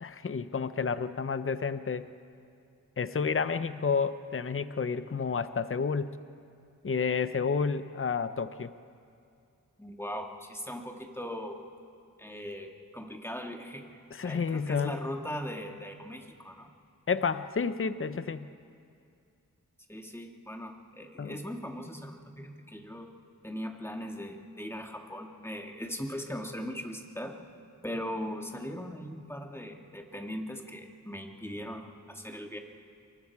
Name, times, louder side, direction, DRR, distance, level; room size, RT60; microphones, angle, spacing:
voice 1, 0.0-2.1 3.0-6.1 6.8-8.7 14.1-15.0 17.1-18.5 21.2-21.4, left 5 dB, 40° left, 12 dB, 0.7 m, -30 dB
voice 2, 9.8-11.6 12.2-16.7 19.9-23.1 23.4-27.4 27.8-32.6, equal, 5° left, 2 dB, 2.2 m, -39 dB
27.5 x 23.5 x 4.8 m, 2.4 s
cardioid pair, 50°, 34 cm